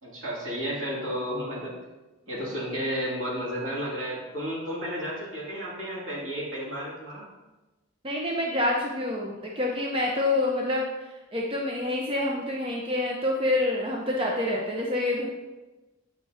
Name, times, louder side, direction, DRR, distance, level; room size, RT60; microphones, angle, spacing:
voice 1, 0.0-1.8 2.3-7.3, equal, 75° right, -5 dB, 2.1 m, -32 dB
voice 2, 8.0-10.8 11.3-15.3, left 2 dB, 25° right, -2 dB, 0.6 m, -27 dB
8.4 x 5.1 x 2.5 m, 1.1 s
head